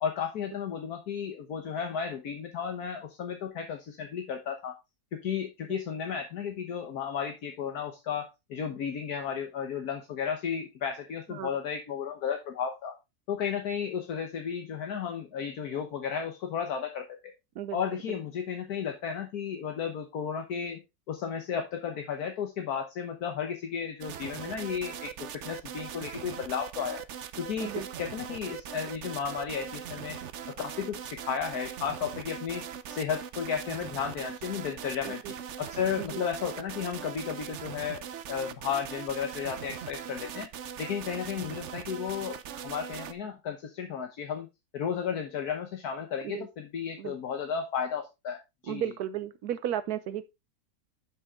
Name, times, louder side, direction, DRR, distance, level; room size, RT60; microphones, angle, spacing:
voice 1, 0.0-4.8 5.2-13.0 13.3-17.0 17.7-20.8 21.1-27.0 27.4-30.2 30.6-32.6 32.9-40.5 40.8-42.4 42.6-44.5 44.7-48.9, left 7 dB, 75° left, 1.6 m, -33 dB
sound 1, 24.0-43.1, right 8 dB, 60° right, 0.9 m, -40 dB
voice 2, 48.7-50.2, right 10 dB, 80° right, 1.2 m, -34 dB
11.0 x 5.9 x 3.6 m
omnidirectional pair, 1.6 m